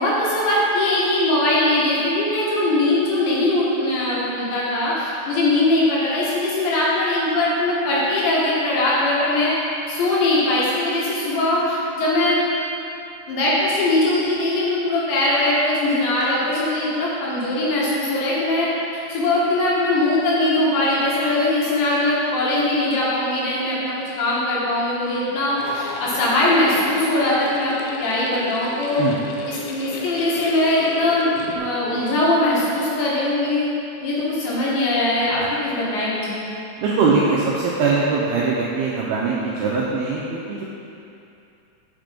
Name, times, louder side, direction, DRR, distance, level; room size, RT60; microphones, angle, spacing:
voice 1, 0.0-9.5 9.9-12.4 13.3-27.7 28.0-29.0 29.4-33.7 34.0-36.4, left 1 dB, 70° left, -7 dB, 3.8 m, -21 dB
sound 1, 25.6-31.6, left 3 dB, 85° left, 2.7 m, -35 dB
voice 2, 36.8-40.6, right 4 dB, 85° right, -5 dB, 2.2 m, -21 dB
8.9 x 7.1 x 5.2 m, 2.7 s
omnidirectional pair, 5.6 m